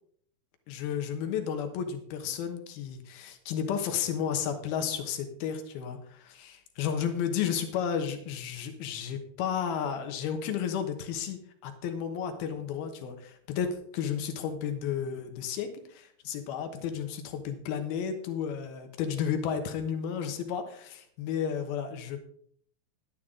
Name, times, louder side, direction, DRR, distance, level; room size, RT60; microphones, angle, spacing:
voice 1, 0.7-22.2, left 8 dB, 80° left, 7 dB, 3.1 m, -32 dB
11.5 x 10.5 x 3.8 m, 0.62 s
omnidirectional pair, 4.3 m